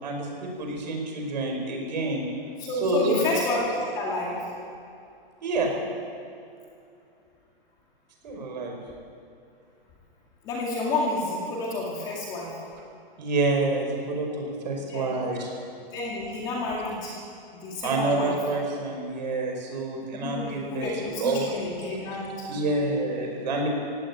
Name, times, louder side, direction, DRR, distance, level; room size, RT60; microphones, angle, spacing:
voice 1, 0.0-2.3 2.7-3.2 5.4-5.7 8.2-8.8 13.2-15.5 17.8-21.4 22.5-23.7, right 2 dB, 45° right, 1 dB, 5.6 m, -28 dB
voice 2, 2.6-3.6 3.9-4.4 10.4-12.5 14.9-15.1 15.9-17.1 17.5-18.4 20.1-22.5, left 2 dB, 15° left, -3 dB, 2.2 m, -30 dB
17.5 x 17.0 x 8.8 m, 2.5 s
hypercardioid pair, 175°, 30 cm